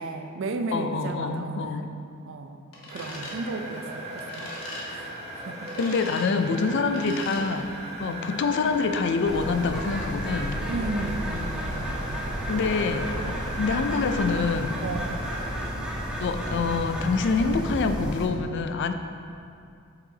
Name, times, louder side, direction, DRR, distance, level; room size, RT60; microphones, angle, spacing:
voice 1, 0.0-1.9 2.3-2.6 2.9-4.5 4.9-5.1 5.4-5.7 8.0-8.5 10.7-12.5 13.0-13.6 14.8-15.5, right 3 dB, 65° right, 6 dB, 0.5 m, -35 dB
voice 2, 0.7-2.0 5.8-7.7 8.0-10.6 12.5-14.8 16.2-18.9, left 4 dB, 55° left, 8 dB, 0.4 m, -26 dB
sound 1, 2.7-3.4 4.2-4.8 5.6-6.3 6.9-7.4, left 2 dB, 75° left, 1.2 m, -40 dB
sound 2, 2.9-15.5, right 1 dB, 30° right, 1.0 m, -38 dB
Bird, 9.3-18.3, equal, 5° right, 0.8 m, -32 dB
7.8 x 5.9 x 2.8 m, 2.4 s
head